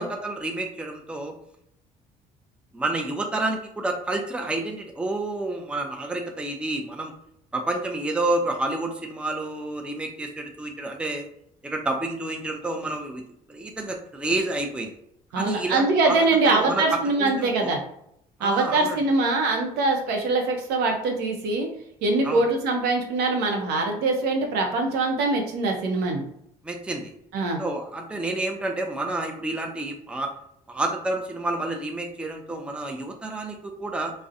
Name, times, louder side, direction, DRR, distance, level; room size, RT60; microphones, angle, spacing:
voice 1, 0.0-1.3 2.7-7.1 7.5-11.2 11.6-13.2 13.5-14.9 15.3-16.2 16.4-16.8 17.2-17.7 18.4-19.0 22.2-22.4 26.6-27.1 27.6-30.3 30.7-34.1, right 2 dB, 5° right, 3 dB, 0.4 m, -29 dB
voice 2, 15.3-17.8 18.4-21.7 22.0-26.2 27.3-27.6, right 3 dB, 75° right, 3 dB, 0.6 m, -23 dB
2.3 x 2.0 x 2.6 m, 0.74 s
supercardioid pair, 75°, 17 cm